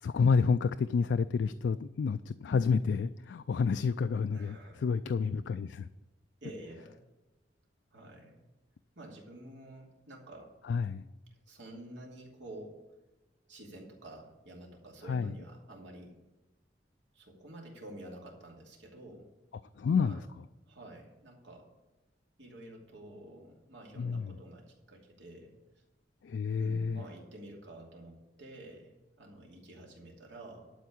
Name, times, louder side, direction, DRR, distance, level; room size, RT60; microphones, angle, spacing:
voice 1, 0.0-5.9 10.7-11.0 15.1-15.3 19.8-20.2 24.0-24.4 26.2-27.0, left 5 dB, 75° left, 10 dB, 0.3 m, -29 dB
voice 2, 4.3-4.8 6.4-7.0 7.9-8.5 9.0-10.5 11.5-12.8 13.5-16.2 17.1-19.3 19.9-20.2 20.7-21.7 22.4-25.5 26.6-30.7, right 1 dB, 85° right, -1 dB, 2.7 m, -49 dB
12.0 x 4.6 x 8.4 m, 1.1 s
head